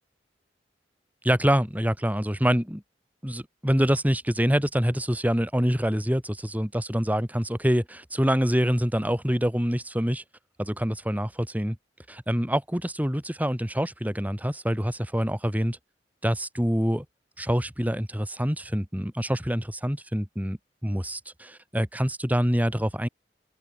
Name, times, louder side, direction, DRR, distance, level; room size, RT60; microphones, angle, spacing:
voice 1, 1.2-2.8 3.2-10.2 10.6-11.8 12.1-15.8 16.2-17.0 17.4-23.1, equal, 10° right, 3.4 m, -26 dB
head